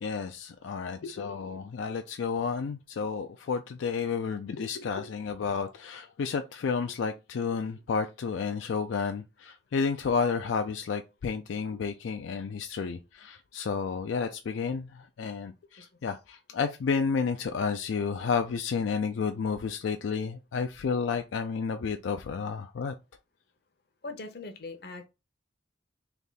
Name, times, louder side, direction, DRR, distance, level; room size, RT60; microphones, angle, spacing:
voice 1, 0.0-22.9, left 5 dB, 80° left, 0.4 m, -31 dB
voice 2, 24.0-25.1, left 3 dB, 55° left, 0.7 m, -40 dB
3.4 x 2.7 x 3.9 m
head